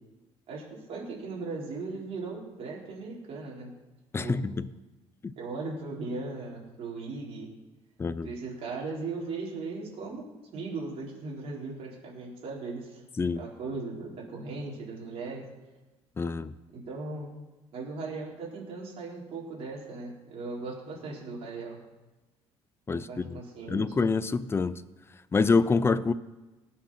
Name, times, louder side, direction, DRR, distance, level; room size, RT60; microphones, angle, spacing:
voice 1, 0.5-3.7 4.2-4.4 5.4-7.5 8.2-13.0 13.4-15.4 16.7-17.3 17.7-21.8 22.9-23.9, right 3 dB, 55° right, 4.5 m, -38 dB
voice 2, 4.1-4.7 5.2-5.3 8.0-8.3 13.2-13.4 16.2-16.5 22.9-23.4 23.7-24.7 25.3-26.1, left 4 dB, 20° left, 0.5 m, -26 dB
18.5 x 6.5 x 5.8 m
cardioid pair, 130°, 12 cm